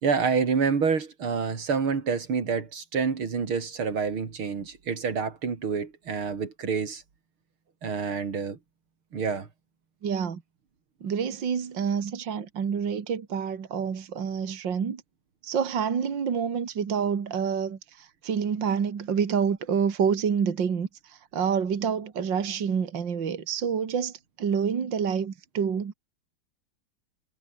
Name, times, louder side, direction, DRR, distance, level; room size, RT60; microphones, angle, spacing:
voice 1, 0.0-7.0 7.8-8.6 9.1-9.5, right 5 dB, 90° right, 3.8 m, -27 dB
voice 2, 10.0-10.4 11.0-15.0 15.4-25.9, right 7 dB, 60° right, 2.7 m, -28 dB
omnidirectional pair, 2.2 m